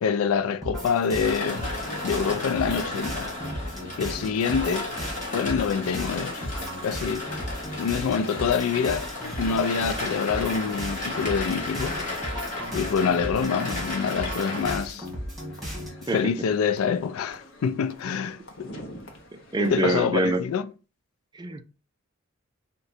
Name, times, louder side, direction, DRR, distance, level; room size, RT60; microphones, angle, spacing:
voice 1, 0.0-1.8 2.0-3.3 4.0-4.9 5.3-6.5 6.8-7.3 7.8-9.1 9.4-12.0 12.7-15.0 16.1-18.7 19.6-20.7, left 6 dB, 85° left, 0.3 m, -26 dB
sound 1, 0.6-16.1, equal, ahead, 1.3 m, -36 dB
sound 2, 1.2-14.8, left 2 dB, 35° left, 1.3 m, -34 dB
sound 3, 5.8-20.0, left 1 dB, 60° left, 0.7 m, -46 dB
voice 2, 19.5-20.4 21.4-21.6, right 2 dB, 20° right, 0.3 m, -25 dB
3.7 x 2.2 x 4.1 m
head